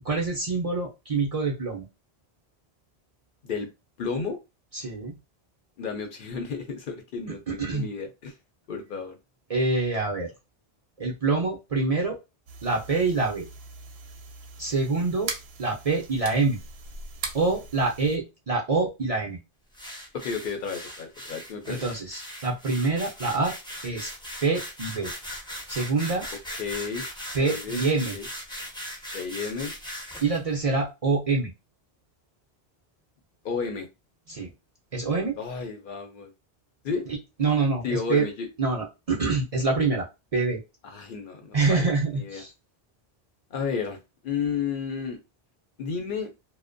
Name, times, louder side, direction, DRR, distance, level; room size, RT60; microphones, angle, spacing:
voice 1, 0.0-1.9 4.7-5.1 7.3-7.9 9.5-10.3 11.0-12.2 12.6-13.5 14.6-15.3 15.6-16.6 17.3-19.4 21.6-23.6 23.8-24.1 24.4-25.1 25.7-26.3 27.3-28.2 30.2-31.5 34.3-34.5 34.9-35.4 37.4-38.3 38.6-40.1 40.3-40.6 41.5-42.5, right 3 dB, 45° right, -1 dB, 0.5 m, -26 dB
voice 2, 4.0-4.4 5.8-8.3 8.7-9.2 20.1-21.8 26.6-27.0 27.4-27.8 28.1-28.3 29.1-29.7 33.4-33.9 35.4-36.3 36.8-37.1 37.8-38.5 40.8-42.4 43.5-44.0 44.2-45.2 45.8-46.3, left 5 dB, 60° left, 5 dB, 0.7 m, -32 dB
sound 1, 12.5-18.2, right 4 dB, 75° right, 0.8 m, -40 dB
sound 2, 19.7-30.4, equal, 5° left, 0.4 m, -39 dB
2.5 x 2.1 x 2.4 m, 0.25 s
omnidirectional pair, 1.0 m